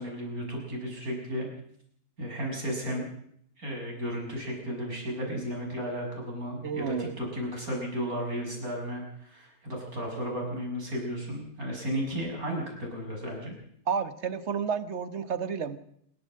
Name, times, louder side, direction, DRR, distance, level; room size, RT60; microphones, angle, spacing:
voice 1, 0.0-1.5 2.2-3.1 3.6-13.6, equal, 65° right, 0 dB, 7.0 m, -34 dB
voice 2, 6.6-7.1 13.9-15.8, right 6 dB, 50° right, 12 dB, 1.4 m, -31 dB
26.5 x 13.0 x 7.6 m, 0.70 s
omnidirectional pair, 1.7 m